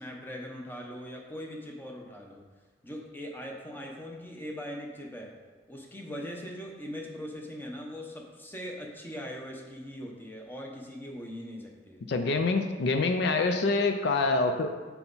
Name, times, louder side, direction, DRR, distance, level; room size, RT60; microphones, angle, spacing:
voice 1, 0.0-2.4 2.8-5.4 5.7-12.0, equal, 10° left, 0 dB, 0.8 m, -41 dB
voice 2, 12.1-14.7, left 3 dB, 65° left, 6 dB, 0.5 m, -26 dB
5.8 x 5.7 x 4.0 m, 1.5 s
head